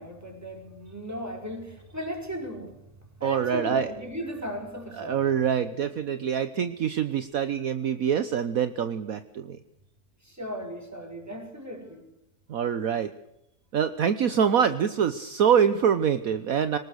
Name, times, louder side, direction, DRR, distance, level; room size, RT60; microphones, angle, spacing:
voice 1, 0.0-2.8 3.2-5.3 10.2-12.0, equal, 10° right, 3 dB, 4.9 m, -36 dB
voice 2, 3.2-3.9 5.0-9.6 12.5-13.1 13.7-16.8, right 8 dB, 60° right, 11 dB, 1.3 m, -25 dB
23.5 x 19.5 x 6.4 m, 0.83 s
omnidirectional pair, 1.7 m